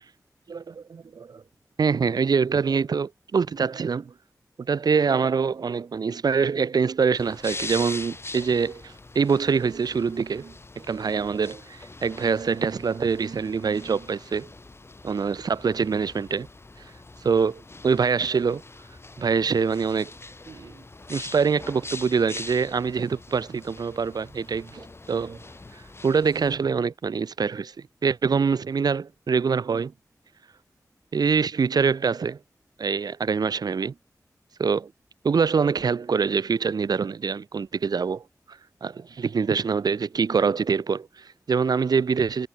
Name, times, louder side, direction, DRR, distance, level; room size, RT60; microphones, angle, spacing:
voice 1, 0.5-1.4 1.8-4.1 4.6-14.5 15.0-16.5 17.2-18.6 19.2-20.1 20.5-20.8 21.1-25.4 26.0-27.7 28.0-29.9 31.1-32.4 32.8-33.9 34.6-34.9 35.2-42.5, right 5 dB, 90° right, 2.2 m, -25 dB
sound 1, 7.2-26.6, left 2 dB, 40° left, 6.8 m, -42 dB
wide cardioid pair, 70°, 7 cm